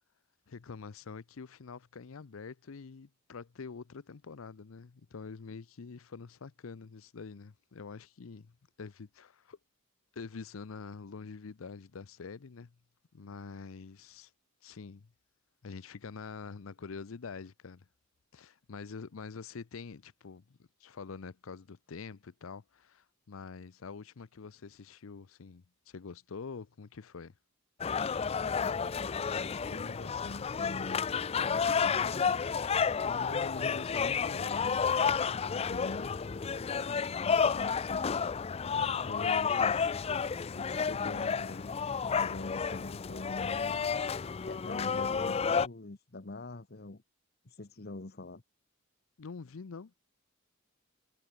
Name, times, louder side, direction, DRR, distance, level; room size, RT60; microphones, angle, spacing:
voice 1, 0.5-9.6 10.1-12.8 13.1-14.3 14.6-15.1 15.6-17.9 18.3-27.3 49.2-50.0, left 5 dB, 85° left, 0.6 m, -46 dB
sound 1, 27.8-45.7, left 6 dB, 30° left, 0.4 m, -31 dB
voice 2, 28.8-31.1 31.4-32.5 33.0-34.8 35.3-38.2 38.8-39.9 40.4-41.7 42.1-44.1 44.4-47.0 47.4-48.4, left 2 dB, 50° left, 1.2 m, -44 dB
head